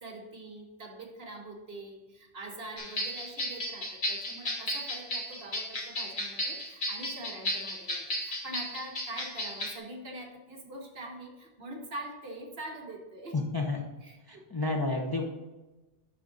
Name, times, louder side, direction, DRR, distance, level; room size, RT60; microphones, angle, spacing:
voice 1, 0.0-13.4 14.0-14.5, right 1 dB, 60° right, 1 dB, 1.4 m, -44 dB
sound 1, 2.8-9.8, equal, 45° left, 1.5 m, -34 dB
voice 2, 13.3-13.8 14.3-15.2, left 3 dB, 25° left, 0 dB, 0.7 m, -30 dB
10.5 x 3.8 x 4.0 m, 1.1 s
omnidirectional pair, 1.2 m